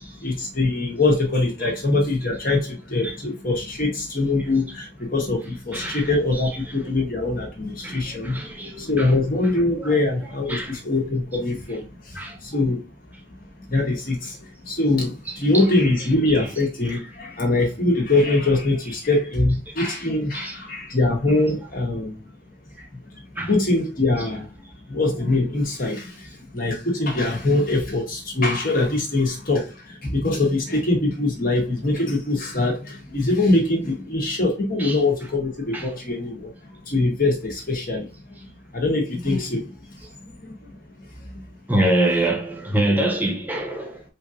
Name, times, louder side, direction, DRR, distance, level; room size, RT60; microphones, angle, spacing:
voice 1, 0.0-12.8 13.7-22.2 23.5-24.5 24.9-36.5 36.8-38.1 38.7-39.7 40.2-40.7 41.0-41.1 41.3-41.4, left 2 dB, 50° left, 1.6 m, -23 dB
voice 2, 5.7-6.6 7.8-9.2 9.8-10.8 12.1-12.3 15.2-15.7 16.3-16.6 20.3-20.6 21.3-21.5 22.8-22.9 23.4-23.6 24.2-24.3 34.8-35.3 35.7-35.9 41.7-44.0, right 1 dB, 10° right, 0.9 m, -26 dB
4.9 x 2.8 x 2.5 m
head